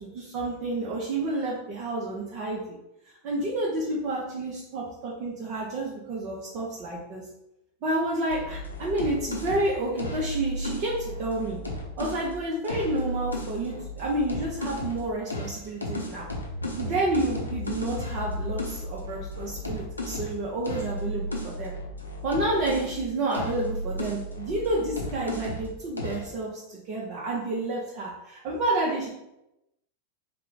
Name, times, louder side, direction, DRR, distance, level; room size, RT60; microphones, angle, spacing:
voice 1, 0.0-2.8 3.2-7.2 7.8-11.6 12.0-16.3 16.8-21.7 22.2-29.1, right 2 dB, 40° right, -3 dB, 0.6 m, -30 dB
sound 1, 8.3-12.3 12.6-15.0 15.3-23.0 23.3-25.7 26.0-26.3, left 1 dB, 80° left, 0.6 m, -34 dB
3.3 x 2.1 x 3.8 m, 0.89 s
figure-of-eight pair, 90°, 0 cm